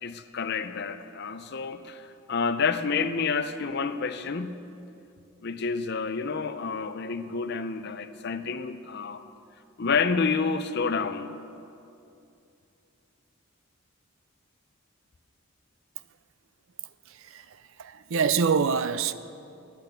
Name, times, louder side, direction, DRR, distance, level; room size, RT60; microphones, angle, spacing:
voice 1, 0.0-4.6 5.4-9.2 9.8-11.3, left 5 dB, 50° left, 0.5 m, -29 dB
voice 2, 17.1-19.1, right 6 dB, 65° right, 0.4 m, -26 dB
10.5 x 8.7 x 7.9 m
head